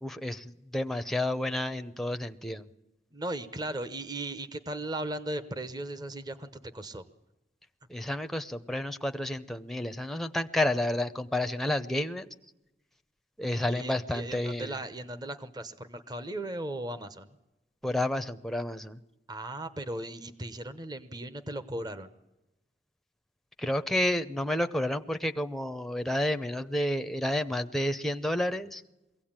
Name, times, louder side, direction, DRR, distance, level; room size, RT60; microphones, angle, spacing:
voice 1, 0.0-2.7 7.9-12.3 13.4-14.8 17.8-19.0 23.6-28.8, left 1 dB, ahead, 8 dB, 0.7 m, -30 dB
voice 2, 3.1-7.0 13.5-17.3 19.3-22.1, right 1 dB, 25° right, 12 dB, 1.0 m, -37 dB
22.5 x 16.5 x 8.9 m, 0.98 s
head